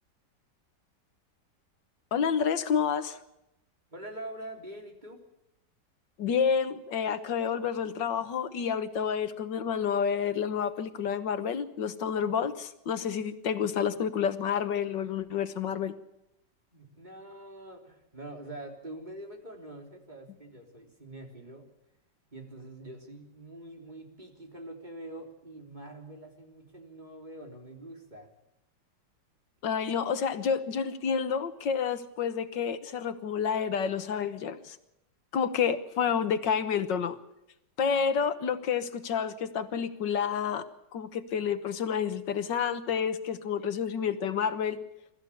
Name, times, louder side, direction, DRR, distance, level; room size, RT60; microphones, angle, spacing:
voice 1, 2.1-3.2 6.2-15.9 29.6-34.8 35.3-37.2 37.8-40.6 40.9-44.8, left 7 dB, 80° left, 11 dB, 1.9 m, -29 dB
voice 2, 3.9-5.2 16.7-21.7 22.3-28.3, right 1 dB, 25° right, 2 dB, 3.7 m, -45 dB
24.0 x 14.0 x 8.6 m, 0.87 s
omnidirectional pair, 1.9 m